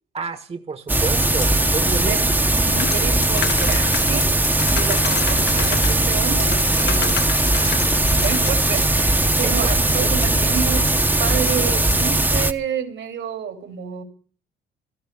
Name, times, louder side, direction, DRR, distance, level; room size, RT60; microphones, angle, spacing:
voice 1, 0.1-2.2 9.4-10.2, right 4 dB, 30° right, 10 dB, 1.2 m, -30 dB
sound 1, 0.9-12.5, right 2 dB, 10° right, 0.8 m, -19 dB
sound 2, 1.4-1.5 1.9-2.2 2.5-8.2 8.7-8.9 9.3-9.4 10.0-10.3 10.5-12.0, left 9 dB, 85° left, 2.0 m, -35 dB
voice 2, 1.9-2.3 2.8-4.3 4.6-7.1 8.1-10.9 11.2-14.0, right 8 dB, 75° right, 7 dB, 3.1 m, -29 dB
sound 3, 2.8-6.2 6.5-8.7, left 9 dB, 60° left, 0.8 m, -31 dB
14.5 x 13.0 x 6.8 m, 0.43 s
cardioid pair, 90°, 20 cm